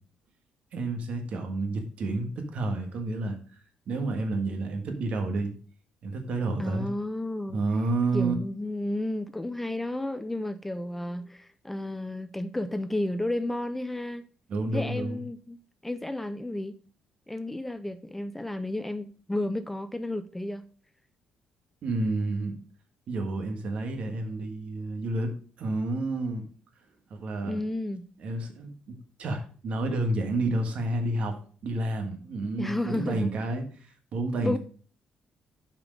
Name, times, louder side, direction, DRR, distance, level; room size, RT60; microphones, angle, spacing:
voice 1, 0.7-3.4 3.9-5.5 6.0-6.9 7.5-8.4 14.5-15.2 21.8-22.5 23.1-26.5 27.1-27.6 28.2-33.7 34.1-34.6, right 2 dB, 55° right, 1.6 m, -30 dB
voice 2, 6.6-7.6 8.1-14.2 14.7-15.6 15.8-16.8 17.3-20.6 27.4-28.0 32.6-33.3 34.4-34.6, left 1 dB, 10° left, 0.4 m, -32 dB
7.4 x 4.8 x 5.1 m
cardioid pair, 140°, 2 cm